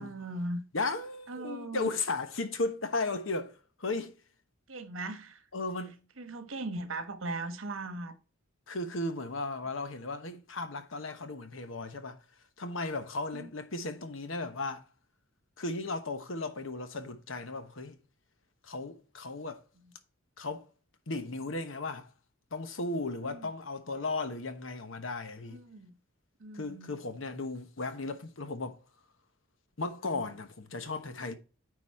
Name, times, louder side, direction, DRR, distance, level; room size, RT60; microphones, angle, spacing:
voice 1, 0.0-0.6 1.3-1.9 4.7-5.5 6.2-8.1 13.3-13.5 23.2-23.5 25.5-25.9 26.4-26.9 30.0-30.2, right 2 dB, 75° right, 1.3 m, -39 dB
voice 2, 0.7-4.2 5.5-5.9 8.7-12.2 12.6-14.8 15.6-18.0 18.6-19.6 20.4-20.6 21.1-22.1 22.5-25.6 26.5-28.8 29.8-31.3, left 3 dB, 70° left, 1.1 m, -35 dB
9.4 x 4.2 x 4.2 m
head